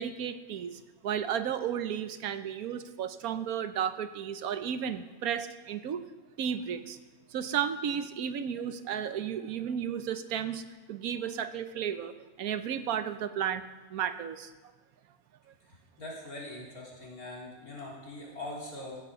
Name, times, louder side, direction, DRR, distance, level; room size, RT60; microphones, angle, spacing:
voice 1, 0.0-6.0 6.4-7.0 7.3-10.6 10.9-12.1 12.4-13.6 13.9-14.5, right 8 dB, 85° right, 11 dB, 1.3 m, -33 dB
voice 2, 15.7-19.0, left 2 dB, 85° left, -4 dB, 4.1 m, -42 dB
15.5 x 8.5 x 6.7 m, 1.2 s
omnidirectional pair, 1.5 m